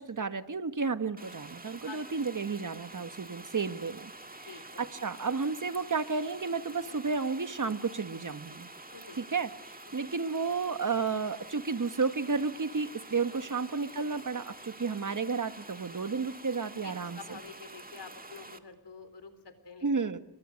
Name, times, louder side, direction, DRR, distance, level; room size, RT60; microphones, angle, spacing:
voice 1, 0.0-4.1 4.4-8.7 9.2-17.4 19.8-20.2, right 4 dB, 50° right, 11 dB, 1.5 m, -32 dB
sound 1, 1.2-18.6, right 2 dB, 20° right, 1.9 m, -48 dB
voice 2, 1.9-2.3 4.5-4.9 6.9-7.0 8.9-9.2 13.3-13.4 16.8-20.1, left 4 dB, 80° left, 10 dB, 4.1 m, -48 dB
28.5 x 23.5 x 6.5 m, 0.80 s
wide cardioid pair, 80°, 41 cm